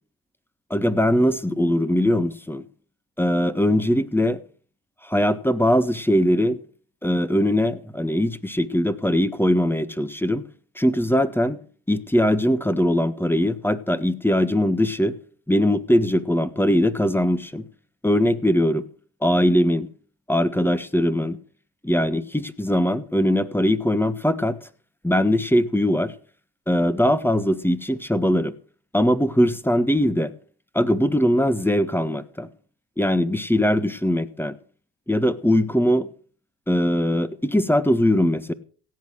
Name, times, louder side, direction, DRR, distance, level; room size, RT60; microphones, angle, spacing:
voice 1, 0.7-2.6 3.2-4.4 5.0-6.6 7.0-10.4 10.8-11.6 11.9-15.1 15.5-17.6 18.0-18.9 19.2-19.9 20.3-21.4 21.8-24.6 25.0-26.1 26.7-28.5 28.9-30.3 30.7-32.5 33.0-34.5 35.1-36.1 36.7-38.5, equal, 5° left, 13 dB, 1.5 m, -21 dB
16.5 x 8.4 x 6.5 m, 0.41 s
supercardioid pair, 65°, 38 cm